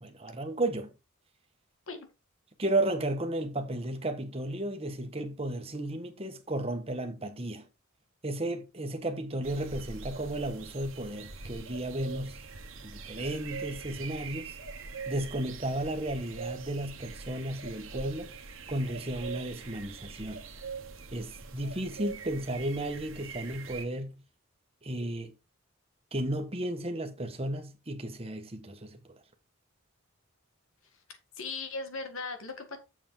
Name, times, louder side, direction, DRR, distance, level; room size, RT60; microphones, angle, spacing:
voice 1, 0.0-0.9 2.6-7.7 8.2-12.4 12.8-14.6 15.1-18.3 18.7-20.4 21.1-24.2 24.8-25.3 26.1-29.2, right 1 dB, 30° right, 1.4 m, -34 dB
sound 1, 9.4-23.9, right 5 dB, 70° right, 1.5 m, -43 dB
voice 2, 31.4-32.8, left 4 dB, 70° left, 1.9 m, -38 dB
7.3 x 7.0 x 3.9 m
head